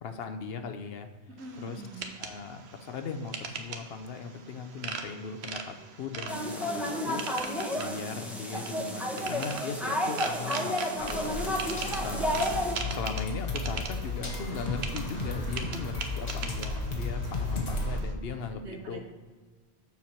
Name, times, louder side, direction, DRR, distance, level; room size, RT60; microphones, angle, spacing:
voice 1, 0.0-1.1 1.6-1.8 2.2-7.2 7.7-11.3 12.0-19.0, left 5 dB, 65° left, 7 dB, 0.9 m, -38 dB
voice 2, 1.3-2.1 10.3-11.0 18.6-19.0, right 3 dB, 90° right, 2 dB, 1.5 m, -44 dB
sound 1, 1.4-18.1, right 5 dB, 75° right, 1.0 m, -41 dB
sound 2, 6.3-12.7, left 1 dB, ahead, 0.9 m, -31 dB
sound 3, 11.0-18.0, left 2 dB, 40° left, 1.1 m, -34 dB
7.2 x 4.6 x 5.7 m, 1.4 s
omnidirectional pair, 1.1 m